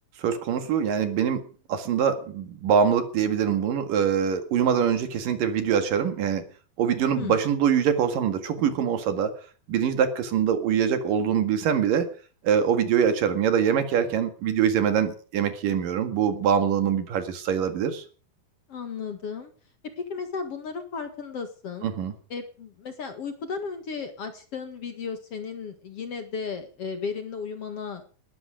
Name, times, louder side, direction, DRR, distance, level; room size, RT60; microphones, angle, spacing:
voice 1, 0.2-6.5 6.8-9.4 9.7-12.1 12.4-18.0 21.8-22.1, right 8 dB, 70° right, 9 dB, 3.5 m, -24 dB
voice 2, 18.7-19.5 20.0-21.9 22.3-28.0, left 5 dB, 50° left, 8 dB, 2.3 m, -34 dB
19.5 x 13.5 x 5.1 m, 0.40 s
omnidirectional pair, 4.1 m